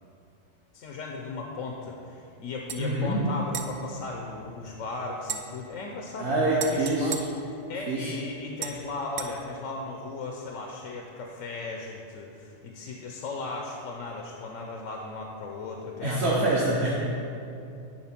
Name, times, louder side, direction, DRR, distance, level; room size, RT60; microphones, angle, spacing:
voice 1, 0.7-7.1 7.5-16.3, left 3 dB, 90° left, 1 dB, 1.1 m, -36 dB
sound 1, 2.7-2.8 3.5-4.8 5.2-8.1 8.6-9.3, right 7 dB, 85° right, 1.0 m, -39 dB
voice 2, 2.8-3.2 6.2-7.1 7.9-8.1 16.0-16.9, right 2 dB, 60° right, -7 dB, 1.4 m, -25 dB
10.5 x 4.0 x 5.8 m, 2.7 s
omnidirectional pair, 1.3 m